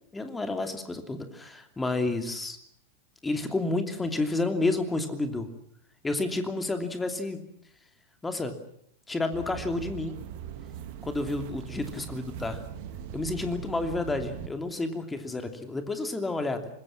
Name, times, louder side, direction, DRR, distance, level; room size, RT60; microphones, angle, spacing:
voice 1, 0.1-2.6 3.2-5.5 6.0-7.4 8.2-8.5 9.1-10.2 11.0-12.6 13.1-16.7, left 2 dB, 10° left, 7 dB, 2.9 m, -30 dB
sound 1, 9.3-14.5, right 9 dB, 50° right, 2.2 m, -40 dB
25.0 x 22.0 x 7.4 m, 0.70 s
figure-of-eight pair, 90°, 0 cm